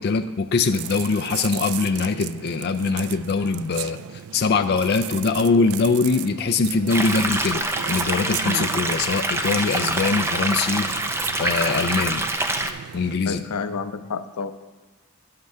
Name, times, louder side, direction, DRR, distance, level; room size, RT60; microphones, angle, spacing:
voice 1, 0.0-4.0 4.3-10.9 11.4-12.3 12.9-13.4, left 4 dB, 45° left, 7 dB, 0.4 m, -22 dB
sound 1, 0.7-13.2, right 10 dB, 70° right, 0.3 m, -35 dB
sound 2, 6.9-12.7, right 2 dB, 10° right, 0.5 m, -25 dB
voice 2, 13.2-14.5, left 5 dB, 85° left, 10 dB, 0.6 m, -29 dB
10.0 x 5.8 x 6.6 m, 1.2 s
head